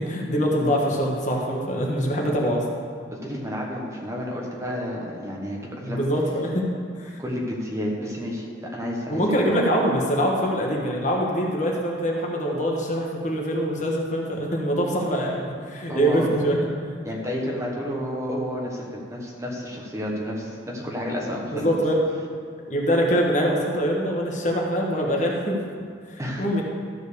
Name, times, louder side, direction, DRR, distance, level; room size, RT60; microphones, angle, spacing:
voice 1, 0.0-2.7 5.8-6.7 7.0-7.1 9.1-16.9 21.5-22.0 22.7-25.6 26.1-26.6, equal, 40° left, -1 dB, 1.3 m, -24 dB
voice 2, 3.1-6.1 7.2-9.2 15.9-16.3 17.0-21.7 26.2-26.4, equal, 15° right, -2 dB, 1.2 m, -30 dB
13.5 x 4.6 x 6.8 m, 2.1 s
head